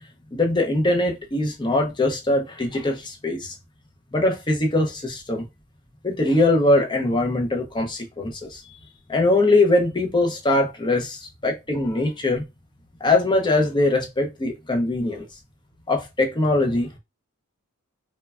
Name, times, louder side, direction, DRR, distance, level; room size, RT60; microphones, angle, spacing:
voice 1, 0.3-3.5 4.1-5.4 6.0-8.6 9.1-12.5 13.0-15.3 15.9-16.9, left 2 dB, 20° left, 0.5 m, -22 dB
3.1 x 2.2 x 2.3 m
head